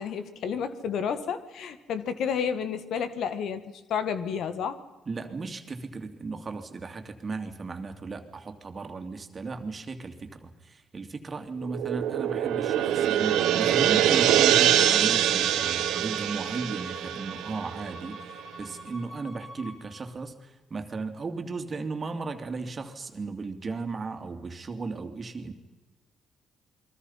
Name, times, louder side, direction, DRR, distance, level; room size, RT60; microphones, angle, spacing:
voice 1, 0.0-4.8, left 7 dB, 75° left, 11 dB, 1.8 m, -31 dB
voice 2, 5.1-25.5, right 4 dB, 35° right, 7 dB, 2.8 m, -36 dB
sound 1, 11.6-18.2, right 11 dB, 85° right, 1.6 m, -24 dB
Bowed string instrument, 13.3-19.8, equal, 55° left, 6.3 m, -44 dB
29.0 x 22.5 x 5.8 m, 1.1 s
cardioid pair, 90°, 0 cm